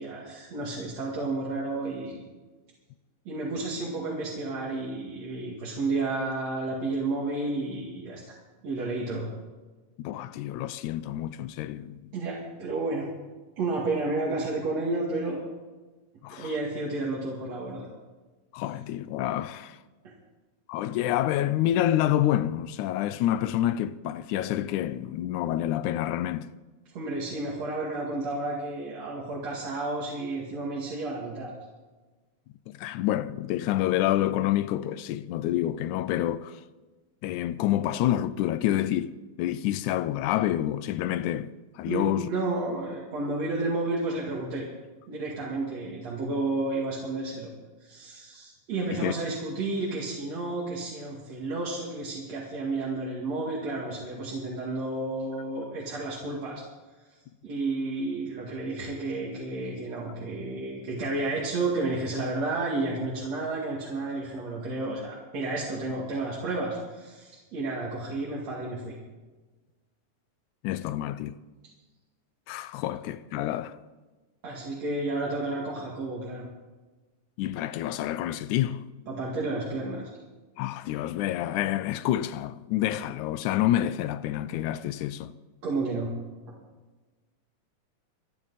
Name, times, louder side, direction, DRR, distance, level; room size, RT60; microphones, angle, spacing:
voice 1, 0.0-2.2 3.2-8.4 8.6-9.3 12.1-13.1 13.6-15.4 16.3-17.9 26.9-31.5 41.9-44.6 45.1-47.5 47.8-56.6 57.4-68.9 74.4-76.4 79.1-80.1 85.6-86.1, right 2 dB, 55° right, 3.3 m, -31 dB
voice 2, 10.0-12.0 16.2-16.5 18.5-19.8 20.7-26.5 32.8-36.6 37.2-42.3 48.9-49.1 70.6-71.4 72.5-73.8 77.4-78.9 80.6-85.3, left 13 dB, 80° left, 1.9 m, -28 dB
26.0 x 10.5 x 4.2 m
omnidirectional pair, 3.7 m